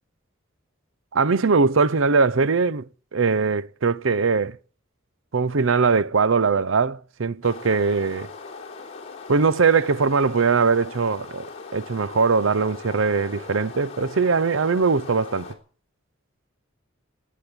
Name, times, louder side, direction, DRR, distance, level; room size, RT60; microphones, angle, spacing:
voice 1, 1.1-4.6 5.3-8.3 9.3-11.5 11.7-15.5, right 4 dB, 70° right, 0.7 m, -21 dB
sound 1, 7.4-15.5, left 4 dB, 35° left, 3.5 m, -39 dB
18.5 x 8.5 x 8.7 m
head